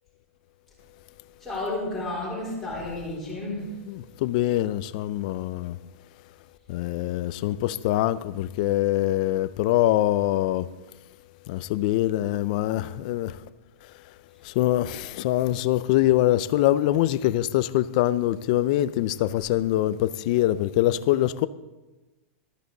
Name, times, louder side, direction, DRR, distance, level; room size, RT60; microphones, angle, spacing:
voice 1, 1.4-3.8, left 2 dB, ahead, 3.8 m, -31 dB
voice 2, 3.9-5.8 6.7-10.7 11.5-13.4 14.4-21.5, left 14 dB, 35° left, 0.4 m, -24 dB
13.5 x 13.0 x 3.9 m
supercardioid pair, 175°, 8 cm